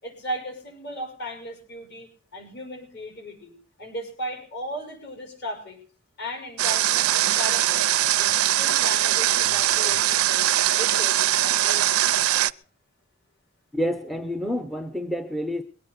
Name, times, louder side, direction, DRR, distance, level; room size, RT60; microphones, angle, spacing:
voice 1, 0.0-3.5 3.8-5.8 6.2-7.9 8.2-10.5 10.7-12.0, equal, 50° left, 6.5 m, -36 dB
Water, 6.6-12.5, right 13 dB, 80° right, 0.6 m, -21 dB
voice 2, 13.7-15.6, equal, ahead, 0.7 m, -28 dB
22.0 x 9.4 x 6.6 m
head